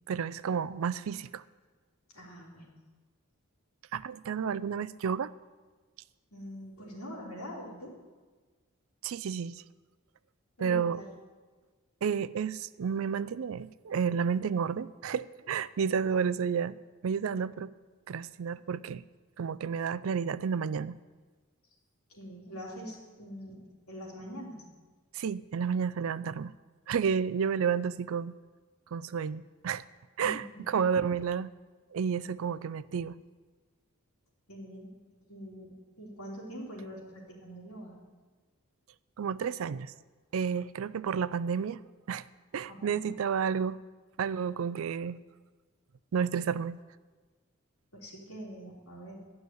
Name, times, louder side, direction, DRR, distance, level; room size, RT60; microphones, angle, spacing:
voice 1, 0.1-1.4 3.9-5.3 9.0-9.6 10.6-11.0 12.0-16.8 17.0-17.7 18.1-19.0 19.4-21.0 25.1-26.5 26.9-28.3 28.9-29.8 30.2-31.5 31.9-33.2 39.2-39.9 40.3-41.8 42.1-42.2 42.5-43.8 44.2-45.2 46.1-46.8, right 6 dB, 70° right, 16 dB, 0.4 m, -31 dB
voice 2, 2.1-2.7 6.3-7.9 10.6-11.1 22.1-24.6 30.2-30.8 34.5-34.9 35.3-38.0 42.7-43.1 47.9-49.3, equal, 85° left, -4 dB, 3.7 m, -44 dB
12.0 x 6.3 x 9.4 m, 1.4 s
head